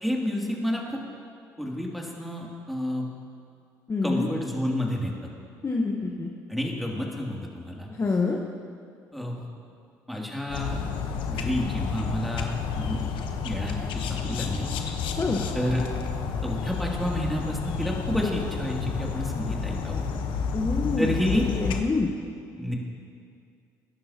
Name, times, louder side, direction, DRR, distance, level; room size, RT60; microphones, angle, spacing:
voice 1, 0.0-1.0 1.6-3.0 4.0-5.1 6.5-7.9 9.1-9.5 10.1-11.0 11.3-13.1 13.4-13.8 14.1-14.7 15.5-15.8 16.4-20.0 21.0-21.5 22.6-22.7, left 1 dB, ahead, -2 dB, 2.8 m, -29 dB
voice 2, 3.9-4.3 5.6-6.3 8.0-8.4 15.2-15.4 20.5-21.1 21.6-22.1, left 3 dB, 35° left, 0 dB, 1.2 m, -26 dB
sound 1, 10.5-21.8, left 5 dB, 70° left, 1.1 m, -30 dB
21.5 x 10.5 x 2.9 m, 2.3 s
hypercardioid pair, 60°, 9 cm